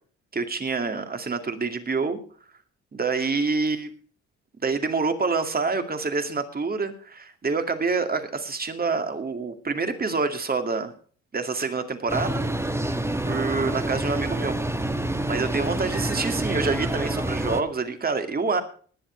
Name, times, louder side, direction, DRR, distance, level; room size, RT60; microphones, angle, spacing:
voice 1, 0.3-2.2 2.9-3.9 4.6-10.9 11.3-12.4 13.3-14.6 15.3-18.6, right 4 dB, 30° right, 7 dB, 2.3 m, -27 dB
sound 1, 12.1-17.6, right 1 dB, 10° right, 1.4 m, -27 dB
20.0 x 7.5 x 4.5 m, 0.43 s
cardioid pair, 90°, 30 cm